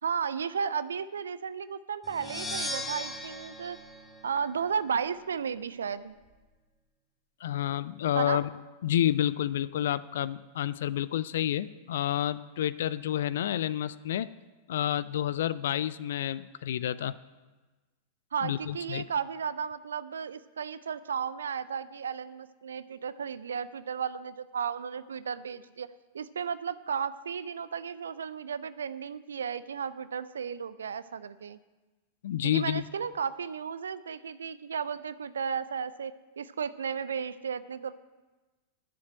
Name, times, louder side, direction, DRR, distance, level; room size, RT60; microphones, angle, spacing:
voice 1, 0.0-3.8 4.2-6.1 8.2-8.4 18.3-25.9 26.1-31.6 32.4-38.0, right 7 dB, 70° right, 16 dB, 0.4 m, -34 dB
sound 1, 2.0-4.9, left 1 dB, 15° left, 1.5 m, -38 dB
voice 2, 7.4-8.5 8.8-14.3 14.7-17.2 18.4-19.0 32.2-32.8, left 11 dB, 60° left, 17 dB, 0.3 m, -29 dB
10.5 x 7.2 x 8.8 m, 1.2 s
figure-of-eight pair, 90°, 0 cm